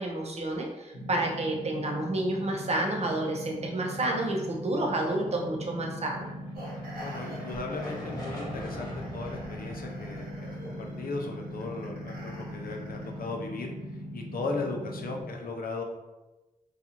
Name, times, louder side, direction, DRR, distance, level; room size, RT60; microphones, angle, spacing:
voice 1, 0.0-6.3, right 1 dB, 45° right, 0 dB, 0.6 m, -30 dB
sound 1, 0.9-15.2, equal, 90° left, 1.0 m, -40 dB
sound 2, 5.9-14.3, equal, 25° left, 0.9 m, -45 dB
sound 3, 6.5-13.3, right 1 dB, 75° right, 1.0 m, -47 dB
voice 2, 7.0-15.8, left 3 dB, 75° left, 1 dB, 0.4 m, -37 dB
2.5 x 2.3 x 2.8 m, 1.1 s
cardioid pair, 70°, 15 cm